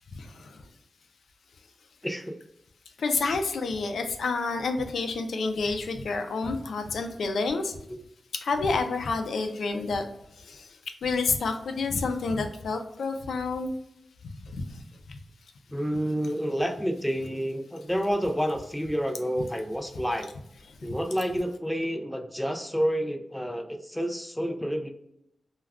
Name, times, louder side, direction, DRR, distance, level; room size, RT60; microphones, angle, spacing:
voice 1, 0.2-0.5 3.0-7.7 8.4-10.0 10.5-10.6 11.0-13.7, left 4 dB, 85° left, 6 dB, 0.4 m, -29 dB
voice 2, 2.0-2.4 15.7-20.3 20.8-24.9, equal, 5° left, 4 dB, 0.3 m, -29 dB
2.3 x 2.2 x 3.4 m, 0.77 s
wide cardioid pair, 135°, 0 cm